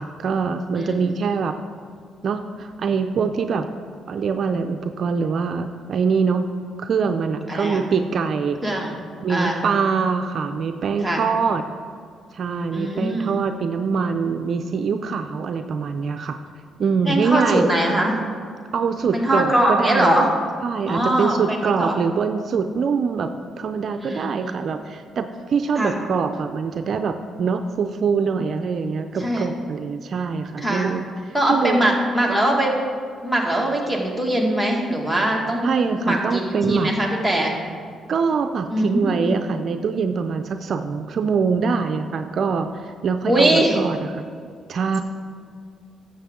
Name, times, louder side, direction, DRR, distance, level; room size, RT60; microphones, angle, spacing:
voice 1, 0.0-1.5 2.2-3.7 4.1-6.5 6.8-8.8 9.2-11.6 12.3-16.4 16.8-17.7 18.7-20.3 20.6-23.3 23.6-31.9 35.6-36.9 38.1-44.2 44.7-45.0, right 5 dB, 55° right, 7 dB, 0.4 m, -24 dB
voice 2, 0.8-1.1 7.5-7.8 8.6-9.0 9.3-9.6 11.0-11.2 12.7-13.3 17.0-18.2 19.1-20.3 20.9-21.9 24.0-24.5 25.8-25.9 29.2-29.5 30.6-30.9 31.3-32.8 33.2-35.7 36.0-37.6 38.7-39.4 43.3-43.8, right 1 dB, ahead, -1 dB, 1.9 m, -21 dB
11.0 x 7.6 x 3.7 m, 2.2 s
cardioid pair, 90°, 0 cm